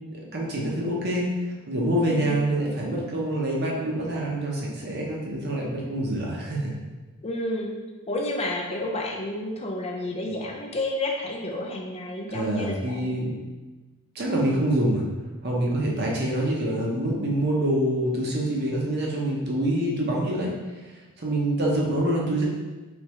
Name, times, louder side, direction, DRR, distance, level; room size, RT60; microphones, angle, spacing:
voice 1, 0.3-1.3 1.7-6.7 10.3-10.4 12.3-13.3 14.1-15.0 15.4-20.5 21.2-22.4, right 1 dB, 50° right, -3 dB, 0.8 m, -26 dB
voice 2, 2.0-2.4 7.2-7.7 8.1-13.1, left 1 dB, 30° left, 1 dB, 0.4 m, -30 dB
3.5 x 3.3 x 3.1 m, 1.2 s
head